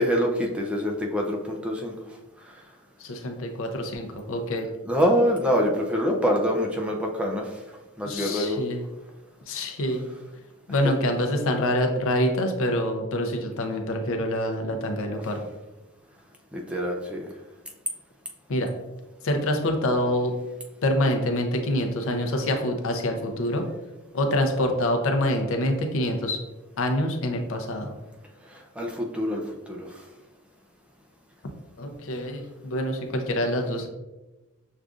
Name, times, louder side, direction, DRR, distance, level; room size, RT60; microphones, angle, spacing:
voice 1, 0.0-1.9 4.9-7.5 8.0-8.6 16.5-17.3 28.8-29.4 29.7-29.9, equal, 5° right, 1 dB, 0.4 m, -25 dB
voice 2, 3.0-4.7 8.0-8.8 9.5-10.0 10.7-15.4 18.5-18.7 19.2-20.3 20.8-23.7 24.1-26.4 26.8-27.9 31.8-33.9, left 1 dB, 65° left, 4 dB, 0.6 m, -26 dB
6.4 x 2.4 x 2.4 m, 1.1 s
head